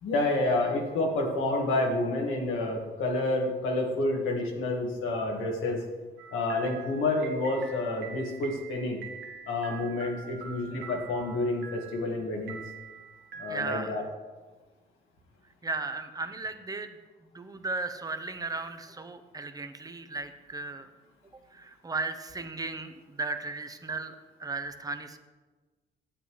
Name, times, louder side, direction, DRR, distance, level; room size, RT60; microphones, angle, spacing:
voice 1, 0.0-5.8 6.3-9.0 9.5-12.6 13.4-14.0, left 2 dB, 85° left, 1 dB, 1.6 m, -29 dB
sound 1, 6.2-14.1, right 6 dB, 70° right, 1.4 m, -45 dB
voice 2, 13.5-14.0 15.6-17.0 17.2-20.9 21.5-25.2, right 3 dB, 20° right, 9 dB, 0.7 m, -36 dB
10.5 x 8.0 x 3.1 m, 1.3 s
cardioid pair, 90°, 20 cm